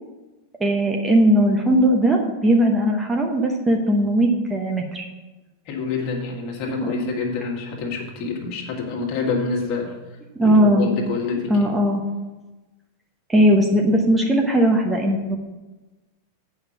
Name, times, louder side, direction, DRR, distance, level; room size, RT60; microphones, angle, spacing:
voice 1, 0.6-5.0 6.7-7.1 10.3-10.9 11.5-12.0 13.3-15.4, equal, 10° right, 1 dB, 1.1 m, -18 dB
voice 2, 5.7-9.9 10.4-11.7, left 4 dB, 45° left, 0 dB, 2.0 m, -27 dB
8.6 x 5.6 x 7.1 m, 1.1 s
figure-of-eight pair, 90°, 0 cm